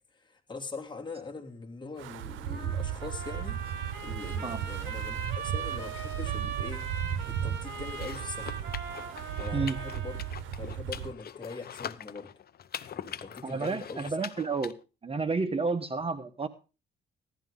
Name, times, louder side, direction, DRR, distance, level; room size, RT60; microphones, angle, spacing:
voice 1, 0.1-3.6 4.0-6.8 7.2-8.6 9.4-10.2 10.6-12.3 12.9-14.0, left 3 dB, 25° left, 3.0 m, -42 dB
Wind, 2.0-11.1, right 9 dB, 80° right, 0.8 m, -35 dB
Trumpet, 2.5-10.3, right 5 dB, 60° right, 2.9 m, -40 dB
sound 1, 7.9-14.7, left 9 dB, 50° left, 0.8 m, -43 dB
voice 2, 13.4-14.7 15.0-16.5, right 4 dB, 30° right, 1.2 m, -30 dB
15.5 x 11.5 x 3.8 m
cardioid pair, 90°, 20 cm